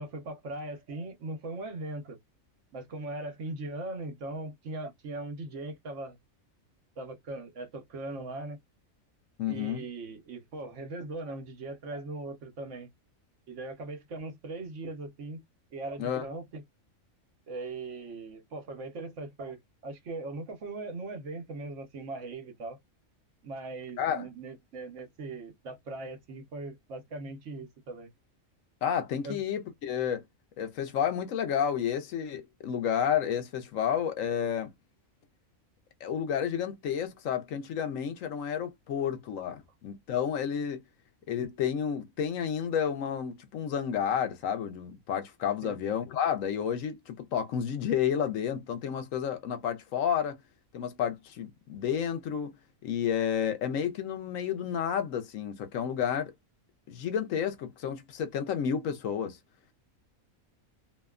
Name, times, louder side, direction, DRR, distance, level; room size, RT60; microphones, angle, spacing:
voice 1, 0.0-2.2 2.7-6.2 7.0-8.6 9.5-12.9 13.5-15.4 15.7-16.6 17.5-22.8 23.4-28.1 29.2-29.4 45.6-45.8, right 2 dB, 65° right, 1.1 m, -39 dB
voice 2, 9.4-9.8 16.0-16.3 24.0-24.3 28.8-30.2 30.6-34.7 36.0-40.8 41.3-50.4 50.7-52.5 52.8-56.3 56.9-59.4, left 8 dB, 75° left, 1.0 m, -31 dB
2.8 x 2.2 x 2.3 m
omnidirectional pair, 1.4 m